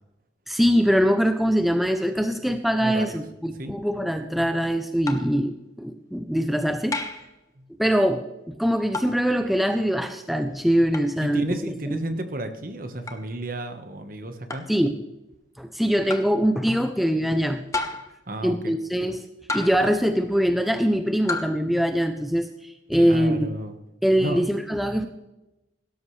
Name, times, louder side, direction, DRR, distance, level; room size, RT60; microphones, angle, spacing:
voice 1, 0.5-7.0 7.8-12.0 14.7-15.0 15.6-17.6 18.4-19.2 19.5-23.5 24.0-25.1, equal, ahead, 6 dB, 0.5 m, -23 dB
voice 2, 2.8-3.2 3.6-3.7 7.6-7.7 11.2-14.7 18.3-18.7 23.0-23.8 24.2-24.4, right 1 dB, 50° right, 7 dB, 1.3 m, -32 dB
sound 1, 5.1-5.4 6.9-7.3 8.9-9.2 10.9-11.1 13.1-13.2 14.5-14.8 16.1-16.4 17.7-18.2 19.5-19.9 21.3-21.6, left 3 dB, 15° left, 0.9 m, -31 dB
17.0 x 13.0 x 3.3 m, 0.97 s
head